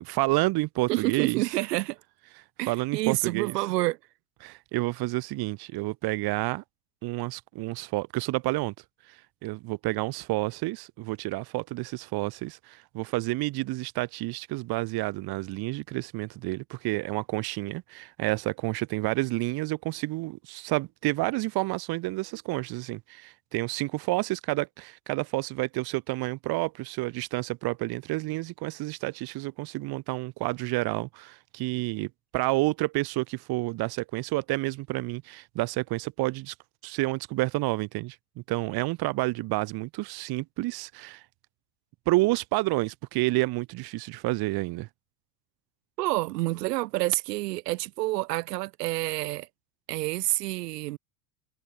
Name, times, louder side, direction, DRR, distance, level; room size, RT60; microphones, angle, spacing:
voice 1, 0.0-1.4 2.7-3.5 4.4-6.6 7.0-8.7 9.1-36.5 36.8-38.2 38.5-41.2 42.1-44.9, right 21 dB, 50° right, 2.1 m, -29 dB
voice 2, 0.9-2.0 2.6-4.0 46.0-49.5 49.9-51.0, right 19 dB, 80° right, 2.3 m, -28 dB
supercardioid pair, 115°, 48 cm